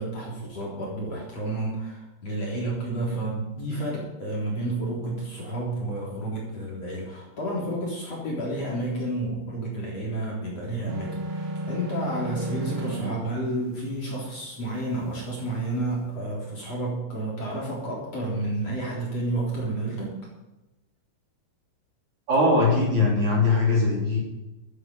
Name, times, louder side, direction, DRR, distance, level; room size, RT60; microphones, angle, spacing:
voice 1, 0.0-20.1, right 1 dB, 35° left, -3 dB, 3.9 m, -30 dB
sound 1, 10.9-13.1, right 1 dB, 90° right, 4.6 m, -32 dB
voice 2, 22.3-24.2, left 2 dB, 45° right, -2 dB, 4.1 m, -21 dB
15.0 x 13.0 x 5.3 m, 1.0 s
omnidirectional pair, 5.4 m